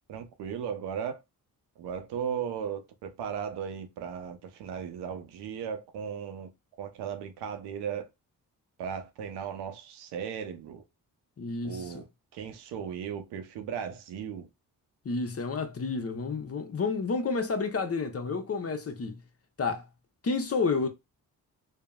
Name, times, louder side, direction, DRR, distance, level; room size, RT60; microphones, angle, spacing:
voice 1, 0.1-1.2 1.8-6.5 6.8-8.1 8.8-10.8 11.6-12.1 12.3-14.5, right 7 dB, 90° right, 0.6 m, -36 dB
voice 2, 11.4-11.9 15.0-19.2 19.6-19.9 20.2-20.9, left 4 dB, 35° left, 0.7 m, -30 dB
3.3 x 2.0 x 2.2 m
supercardioid pair, 50°, 39 cm